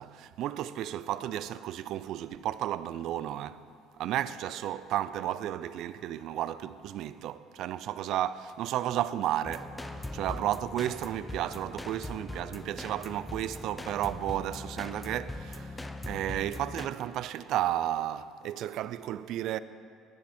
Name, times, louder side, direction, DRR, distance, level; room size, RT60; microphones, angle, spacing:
voice 1, 0.0-3.6 4.0-19.6, right 12 dB, 60° right, 0.4 m, -33 dB
sound 1, 9.4-16.9, left 2 dB, 10° left, 0.6 m, -41 dB
15.5 x 9.7 x 4.3 m
cardioid pair, 135°, 0 cm